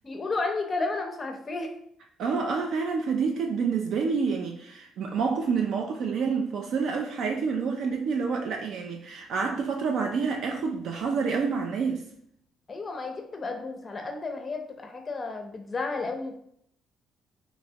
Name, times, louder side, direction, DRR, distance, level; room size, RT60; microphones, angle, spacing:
voice 1, 0.0-1.7 12.7-16.4, left 3 dB, 25° left, 0.5 m, -32 dB
voice 2, 2.2-12.0, right 5 dB, 60° right, 0.3 m, -28 dB
3.2 x 3.0 x 2.7 m
cardioid pair, 135°, 0 cm